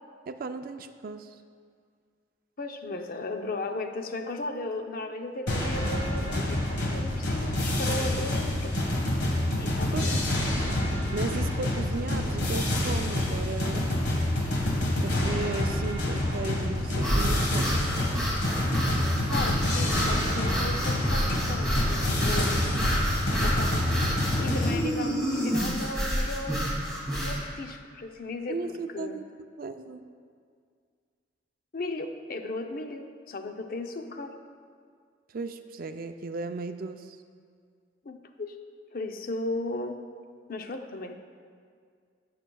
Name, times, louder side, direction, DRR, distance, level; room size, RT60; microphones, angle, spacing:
voice 1, 0.3-1.4 9.9-10.2 11.1-13.9 15.0-17.8 28.5-29.2 29.6-30.0 35.3-37.2, right 3 dB, 50° right, 8 dB, 0.4 m, -35 dB
voice 2, 2.6-8.8 9.6-10.1 19.3-22.9 23.4-24.1 24.4-29.2 31.7-34.4 38.0-38.6 38.9-40.0 40.5-41.1, left 2 dB, 50° left, 5 dB, 0.6 m, -36 dB
sound 1, 5.5-24.8, left 1 dB, 70° left, 1.4 m, -27 dB
sound 2, 16.9-27.4, equal, 5° left, 2.5 m, -29 dB
17.5 x 6.7 x 2.3 m, 2.1 s
head